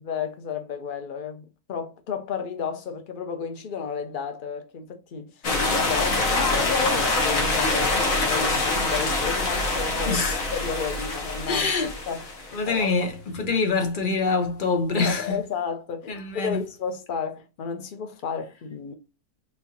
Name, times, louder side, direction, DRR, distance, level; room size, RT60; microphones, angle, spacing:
voice 1, 0.0-12.2 12.6-13.1 14.9-18.9, left 6 dB, 80° left, 0.4 m, -32 dB
sound 1, 5.4-12.7, left 2 dB, 60° left, 1.6 m, -25 dB
voice 2, 10.1-10.4 11.5-11.9 12.5-15.4 16.1-16.6, left 4 dB, 45° left, 0.7 m, -25 dB
4.3 x 3.4 x 2.7 m
omnidirectional pair, 1.6 m